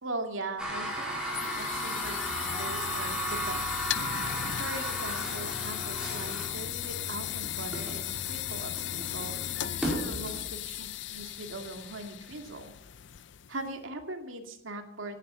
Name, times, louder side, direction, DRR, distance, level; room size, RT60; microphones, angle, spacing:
voice 1, 0.0-3.8 4.6-9.4 10.0-12.7 13.5-15.2, right 2 dB, 85° right, 4 dB, 2.4 m, -40 dB
sound 1, 0.6-10.4, right 1 dB, 5° right, 4.6 m, -36 dB
sound 2, 0.9-13.7, left 12 dB, 65° left, 0.5 m, -36 dB
17.5 x 9.9 x 5.7 m, 0.87 s
head